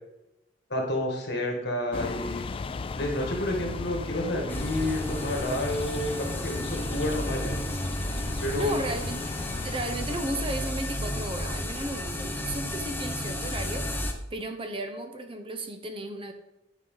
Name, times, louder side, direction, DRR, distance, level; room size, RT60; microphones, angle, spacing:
voice 1, 0.7-2.4 2.9-7.6 8.4-8.8, left 1 dB, 60° left, 1 dB, 2.1 m, -30 dB
sound 1, 1.9-9.8, left 4 dB, 30° left, 0.3 m, -36 dB
sound 2, 4.5-14.1, left 1 dB, 10° left, 0.8 m, -32 dB
voice 2, 8.5-9.2 9.6-16.3, right 1 dB, 30° right, 6 dB, 0.8 m, -34 dB
9.5 x 5.7 x 3.9 m, 0.92 s
head